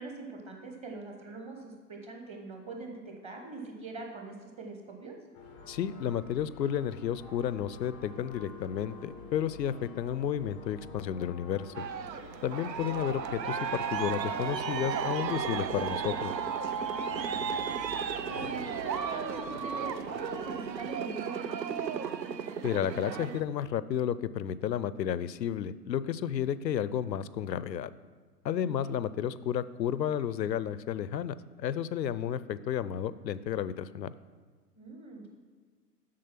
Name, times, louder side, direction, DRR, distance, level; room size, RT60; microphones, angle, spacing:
voice 1, 0.0-5.1 16.9-22.0 28.6-28.9 34.8-35.3, right 3 dB, 15° right, 2 dB, 0.9 m, -43 dB
sound 1, 5.3-20.9, left 3 dB, 10° left, 0.4 m, -48 dB
voice 2, 5.7-11.7 12.4-16.3 22.6-27.9 28.4-34.1, left 9 dB, 80° left, 16 dB, 0.6 m, -32 dB
Aircraft, 11.7-23.4, right 7 dB, 85° right, 0.7 m, -34 dB
7.6 x 6.4 x 5.8 m, 1.5 s
figure-of-eight pair, 115°, 50 cm